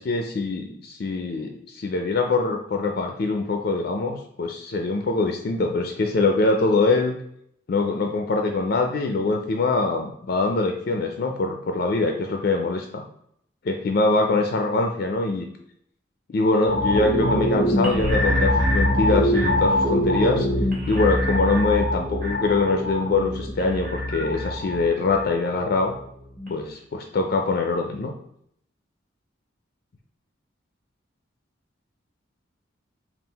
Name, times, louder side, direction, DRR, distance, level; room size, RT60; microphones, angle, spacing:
voice 1, 0.1-7.2 7.7-13.0 13.6-15.5 16.3-20.5 20.9-25.9 26.5-28.1, left 3 dB, 50° left, 4 dB, 0.4 m, -23 dB
sound 1, 16.7-26.0 26.4-26.5, left 1 dB, 40° right, 1.3 m, -24 dB
3.7 x 2.4 x 3.9 m, 0.70 s
head